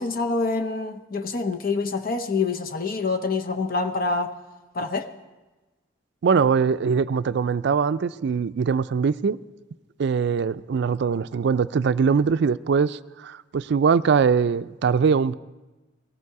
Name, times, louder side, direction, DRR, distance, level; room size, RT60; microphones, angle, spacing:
voice 1, 0.0-4.3 4.7-5.1, left 3 dB, 50° left, 0.8 m, -26 dB
voice 2, 6.2-9.4 10.0-15.3, right 6 dB, 60° right, 0.4 m, -22 dB
19.0 x 14.0 x 4.7 m
head